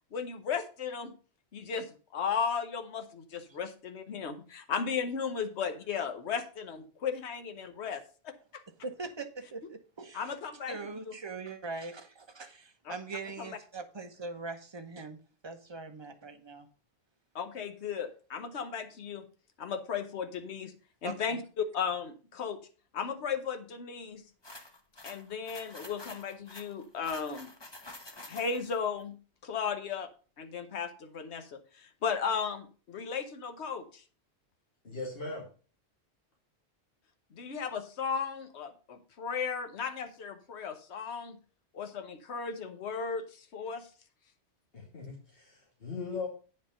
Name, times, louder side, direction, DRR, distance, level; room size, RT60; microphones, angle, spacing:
voice 1, 0.1-1.1 1.5-8.3 10.1-10.8 11.0-11.1 12.8-12.9 13.4-13.5 17.3-19.2 19.6-20.7 21.0-22.6 22.9-24.2 25.0-27.5 28.3-29.2 29.4-30.1 30.4-34.0 37.3-41.4 41.7-43.9, left 6 dB, 70° left, 1.3 m, -35 dB
voice 2, 8.8-10.3 10.7-15.2 15.4-16.7 21.0-21.4, right 3 dB, 25° right, 0.9 m, -41 dB
sound 1, 24.4-28.8, left 2 dB, 25° left, 1.2 m, -48 dB
voice 3, 34.8-35.5 44.7-46.3, left 4 dB, 55° left, 2.7 m, -39 dB
9.1 x 5.3 x 5.6 m
omnidirectional pair, 1.2 m